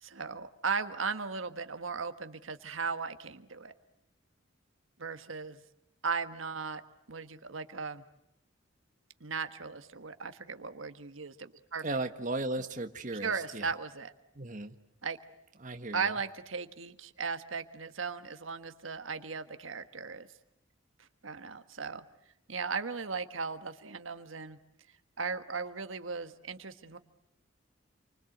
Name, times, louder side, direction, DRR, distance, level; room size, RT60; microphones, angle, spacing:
voice 1, 0.0-3.7 5.0-5.6 6.0-6.8 7.1-8.0 9.2-11.8 13.2-14.1 15.0-15.2 15.9-20.3 21.2-22.0 22.5-24.6 25.2-27.0, right 5 dB, 90° right, 9 dB, 1.5 m, -37 dB
voice 2, 11.8-13.7 14.3-14.7 15.6-16.2, right 2 dB, 40° right, 7 dB, 1.5 m, -36 dB
29.0 x 24.5 x 8.0 m, 0.81 s
head